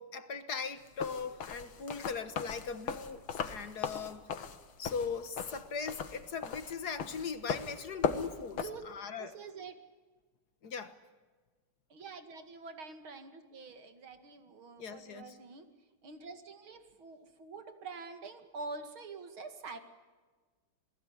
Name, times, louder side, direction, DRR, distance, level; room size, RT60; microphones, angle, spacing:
voice 1, 0.0-4.2 4.8-9.3 10.6-10.9 14.8-15.4, left 5 dB, 55° left, 1.9 m, -39 dB
sound 1, 0.9-8.6, left 6 dB, 90° left, 2.3 m, -37 dB
voice 2, 8.5-8.8 9.2-9.8 11.9-15.7 16.0-19.8, right 4 dB, 85° right, 3.1 m, -46 dB
28.5 x 20.5 x 9.9 m
omnidirectional pair, 2.2 m